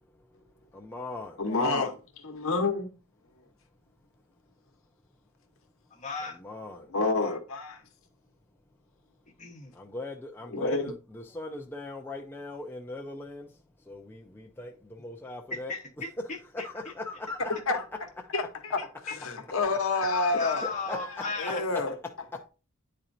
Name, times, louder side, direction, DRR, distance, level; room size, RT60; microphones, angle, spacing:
voice 1, 0.7-1.4 6.4-6.9 9.7-13.5 13.9-15.7 16.5-17.8 20.6-21.0, left 2 dB, 10° left, 0.4 m, -39 dB
voice 2, 1.4-2.9 6.9-7.8 10.5-10.9 17.5-17.8 18.3-22.0, left 3 dB, 70° left, 0.9 m, -29 dB
voice 3, 6.0-6.4 9.4-9.7 15.5-16.7 18.8-19.2 20.4-21.7, left 3 dB, 35° left, 1.0 m, -36 dB
9.9 x 4.3 x 2.6 m
head